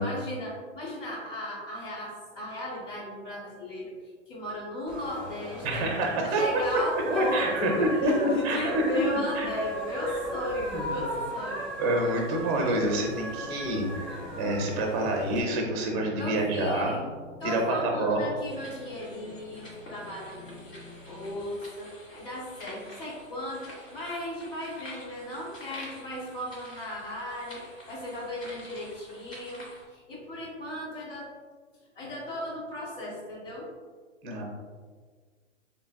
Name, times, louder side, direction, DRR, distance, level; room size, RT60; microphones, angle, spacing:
voice 1, 0.0-3.9 4.3-5.9 6.4-11.7 16.2-17.1 17.4-20.8 21.1-31.3 31.9-33.7, left 1 dB, 75° left, -7 dB, 1.2 m, -36 dB
sound 1, 4.9-15.4, right 1 dB, ahead, 1.0 m, -37 dB
voice 2, 5.6-6.4 7.1-8.9 9.3-9.5 10.7-11.2 11.8-17.0 17.4-18.2 34.2-34.4, right 1 dB, 20° right, 1 dB, 0.5 m, -27 dB
sound 2, 11.6-21.4, left 2 dB, 35° left, 0.4 m, -47 dB
sound 3, 18.4-29.9, left 1 dB, 90° left, 1.5 m, -49 dB
3.6 x 3.2 x 2.2 m, 1.5 s
hypercardioid pair, 125°, 38 cm